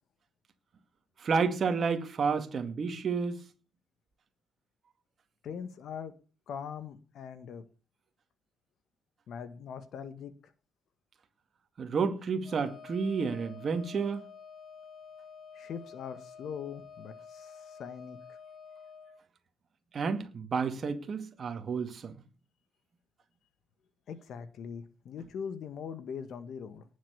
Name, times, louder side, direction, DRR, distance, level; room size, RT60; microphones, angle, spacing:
voice 1, 1.2-3.4 11.8-14.2 19.9-22.2, right 5 dB, 35° right, 2.2 m, -30 dB
voice 2, 5.4-6.1 6.5-7.6 9.3-10.3 15.5-18.4 24.1-26.8, left 7 dB, 60° left, 1.7 m, -41 dB
Wind instrument woodwind instrument, 12.4-19.2, left 6 dB, 20° left, 4.4 m, -50 dB
18.5 x 7.3 x 7.1 m
cardioid pair, 150°, 0 cm